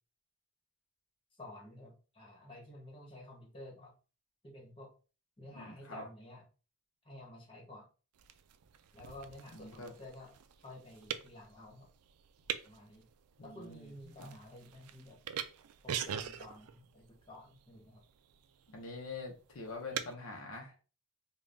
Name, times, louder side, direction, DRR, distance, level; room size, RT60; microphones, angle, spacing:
voice 1, 1.4-3.9 4.4-4.9 5.4-6.4 7.0-7.9 8.9-10.3 10.6-11.9 12.6-13.1 13.4-15.2 15.8-18.0, left 1 dB, 25° left, -1 dB, 1.2 m, -51 dB
voice 2, 5.5-6.0 9.5-9.9 13.4-14.3 18.7-20.7, left 3 dB, 65° left, 1 dB, 0.7 m, -45 dB
sound 1, 8.1-20.1, right 9 dB, 85° right, 0.4 m, -45 dB
5.1 x 2.3 x 2.6 m, 0.35 s
head